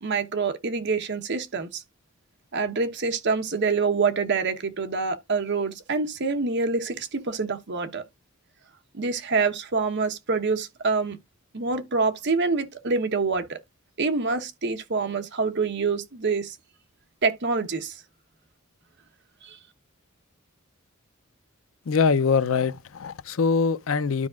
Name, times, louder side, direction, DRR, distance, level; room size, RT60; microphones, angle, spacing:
voice 1, 0.0-1.8 2.5-8.0 8.9-11.2 11.5-13.6 14.0-16.6 17.2-18.0 19.4-19.6, right 4 dB, 55° right, 1.0 m, -26 dB
voice 2, 21.9-24.3, left 5 dB, 75° left, 0.5 m, -23 dB
12.5 x 4.8 x 2.4 m
head